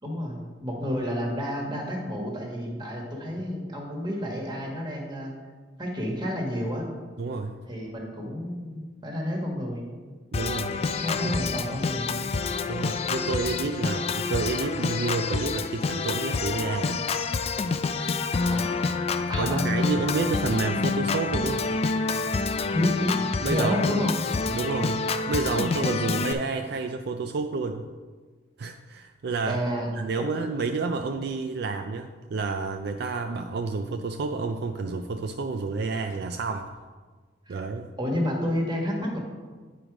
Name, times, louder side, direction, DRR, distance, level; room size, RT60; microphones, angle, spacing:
voice 1, 0.0-5.3 5.8-6.8 7.7-9.9 11.0-12.2 18.5-18.8 19.3-19.7 20.0-20.1 22.7-23.2 23.5-24.1 29.5-29.9 30.1-30.2 37.5-37.6 38.0-39.2, equal, 25° right, -1 dB, 1.6 m, -30 dB
voice 2, 7.2-7.6 10.3-10.8 11.2-11.3 12.7-17.1 18.0-18.2 19.4-21.7 23.4-24.1 24.5-27.8 28.6-29.6 29.9-36.7 37.5-37.9, right 4 dB, 60° right, 6 dB, 0.4 m, -30 dB
Organ, 10.3-26.3, left 4 dB, 35° left, 0.3 m, -28 dB
sound 1, 10.5-16.2 16.5-16.6, equal, 80° right, 2.0 m, -51 dB
9.0 x 4.7 x 5.0 m, 1.4 s
head